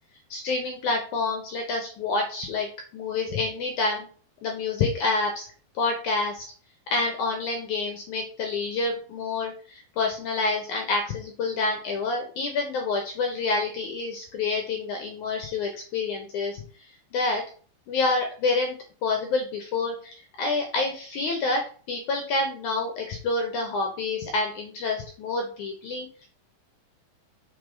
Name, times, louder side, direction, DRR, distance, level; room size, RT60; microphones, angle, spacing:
voice 1, 0.3-2.7 2.9-4.1 4.4-5.5 5.8-6.5 6.9-16.6 17.1-17.4 17.9-18.8 19.0-21.6 21.9-26.3, left 3 dB, 70° left, 3 dB, 1.9 m, -28 dB
6.6 x 4.1 x 5.1 m, 0.42 s
omnidirectional pair, 4.7 m